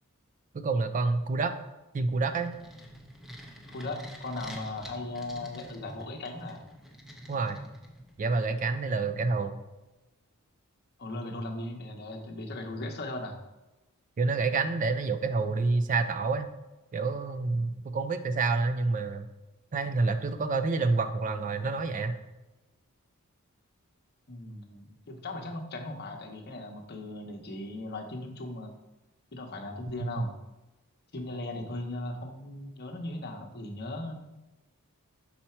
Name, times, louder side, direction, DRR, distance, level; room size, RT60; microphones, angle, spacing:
voice 1, 0.5-1.5 1.9-2.5 7.3-7.6 8.2-9.5 14.2-16.5 16.9-19.3 19.7-22.1, right 3 dB, 35° right, 10 dB, 0.4 m, -28 dB
sound 1, 2.0-8.3, equal, ahead, 0.8 m, -47 dB
voice 2, 3.7-6.6 11.0-13.4 24.3-28.7 29.3-30.3 31.1-34.2, left 2 dB, 50° left, 2 dB, 0.9 m, -38 dB
5.7 x 4.3 x 4.4 m, 1.1 s
head